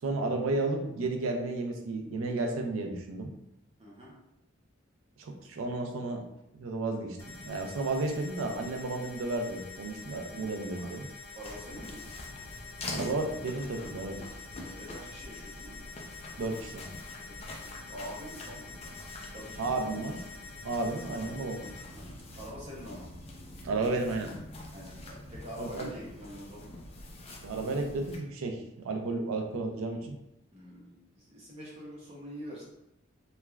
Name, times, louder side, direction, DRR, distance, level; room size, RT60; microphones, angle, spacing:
voice 1, 0.0-3.3 5.2-6.2 6.5-11.1 12.9-14.2 16.4-16.9 19.6-20.2 20.6-21.6 23.6-24.3 25.6-25.9 27.4-30.1, right 3 dB, 85° right, 3 dB, 0.4 m, -32 dB
voice 2, 3.8-4.1 10.1-10.9 11.3-12.0 14.6-15.9 17.3-18.7 19.2-20.0 20.8-21.4 21.9-23.1 24.7-26.8 30.5-32.6, equal, 30° right, -6 dB, 0.6 m, -46 dB
sound 1, 7.2-21.8, left 4 dB, 85° left, 0.6 m, -47 dB
sound 2, 11.4-28.2, left 1 dB, 30° left, 0.3 m, -45 dB
3.1 x 2.2 x 2.2 m, 0.85 s
head